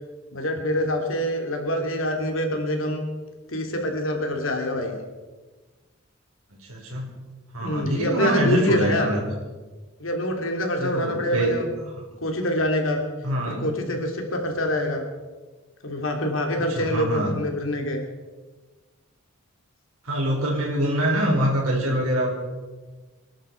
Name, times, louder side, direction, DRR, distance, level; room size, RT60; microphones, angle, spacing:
voice 1, 0.3-3.0 3.5-4.9 7.6-9.1 10.0-11.7 12.2-13.0 13.5-15.0 15.8-18.0, left 1 dB, 70° left, 3 dB, 3.0 m, -25 dB
voice 2, 6.7-7.2 7.5-9.2 10.8-11.5 13.2-13.6 16.6-17.3 20.0-22.3, right 1 dB, 90° right, -2 dB, 4.6 m, -24 dB
26.0 x 11.5 x 4.6 m, 1.3 s
head